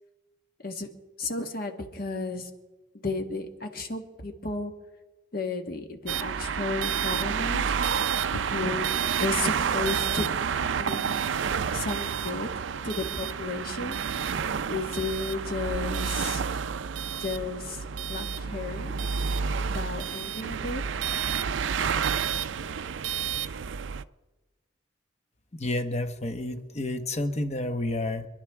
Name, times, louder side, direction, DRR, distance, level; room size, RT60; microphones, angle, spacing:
voice 1, 1.2-2.5 2.9-4.7 5.3-7.7 8.3-8.9 9.2-10.3 10.8-11.2 11.7-12.5 12.8-14.0 14.7-16.4 17.2-18.9 19.7-20.8, left 3 dB, 50° left, 5 dB, 1.5 m, -33 dB
sound 1, 6.1-24.0, right 7 dB, 85° right, 0.5 m, -29 dB
voice 2, 25.5-28.3, left 2 dB, 35° left, 8 dB, 1.0 m, -30 dB
26.5 x 11.5 x 3.6 m, 1.2 s
head